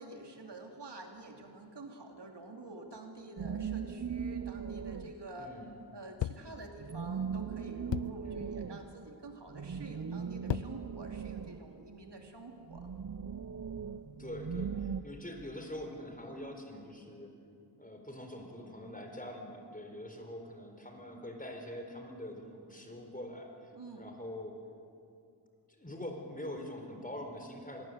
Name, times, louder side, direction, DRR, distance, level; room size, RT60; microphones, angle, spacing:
voice 1, 0.0-5.6 5.9-12.9 23.7-24.1, right 2 dB, 70° right, 3 dB, 2.9 m, -48 dB
sound 1, 3.4-5.4 6.8-12.1 12.7-15.0, right 6 dB, 45° right, 0.7 m, -39 dB
voice 2, 5.4-5.8 6.4-6.7 8.2-8.5 14.2-17.4 17.8-24.6 25.7-27.9, left 1 dB, 20° left, 4 dB, 4.3 m, -44 dB
sound 2, 6.2-6.6 7.9-8.3 9.1-9.4 10.2-10.9 11.5-12.4, left 11 dB, 85° left, 0.5 m, -37 dB
26.5 x 20.5 x 8.0 m, 2.5 s
wide cardioid pair, 65°, 43 cm